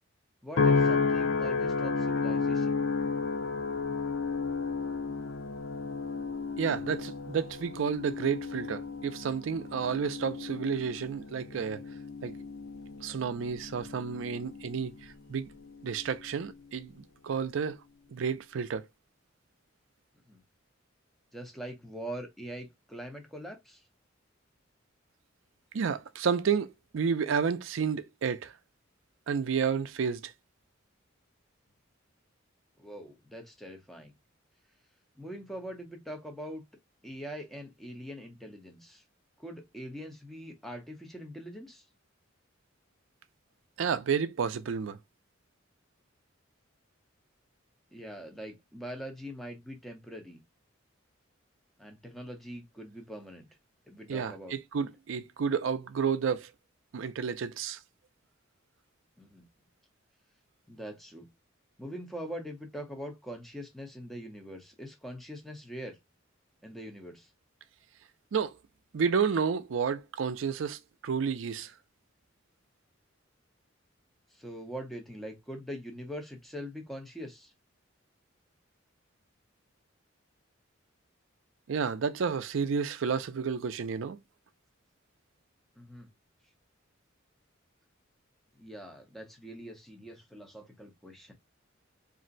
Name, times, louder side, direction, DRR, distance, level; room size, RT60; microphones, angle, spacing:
voice 1, 0.4-2.8 20.3-20.4 21.3-23.8 32.8-34.1 35.2-36.6 37.0-39.0 39.4-41.8 47.9-50.4 51.8-53.5 53.9-54.6 59.2-59.5 60.7-61.3 61.8-66.0 66.6-67.3 74.3-77.5 85.8-86.1 88.6-91.3, equal, ahead, 0.7 m, -43 dB
sound 1, 0.6-15.0 15.6-16.0, left 4 dB, 90° left, 0.6 m, -32 dB
voice 2, 6.6-11.8 12.2-12.4 13.0-14.9 15.3-15.5 15.8-17.8 18.1-18.9 25.7-28.5 29.3-30.3 43.8-45.0 54.1-56.5 56.9-57.8 68.3-68.5 68.9-71.7 81.7-84.2, right 6 dB, 70° right, 0.4 m, -31 dB
2.6 x 2.1 x 3.8 m
head